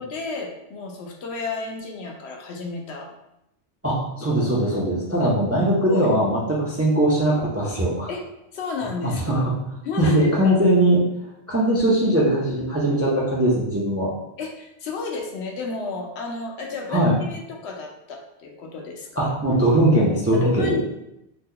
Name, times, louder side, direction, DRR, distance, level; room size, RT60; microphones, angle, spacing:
voice 1, 0.0-3.1 5.2-5.3 5.8-6.1 8.1-8.2 8.5-9.5 9.8-10.6 14.4-19.3 20.3-20.8, left 3 dB, 75° left, 1 dB, 0.8 m, -31 dB
voice 2, 3.8-8.1 9.0-9.4 10.0-11.0 11.5-14.1 16.9-17.1 19.2-20.8, right 1 dB, 25° right, -5 dB, 0.3 m, -20 dB
2.8 x 2.1 x 3.6 m, 0.83 s
omnidirectional pair, 1.1 m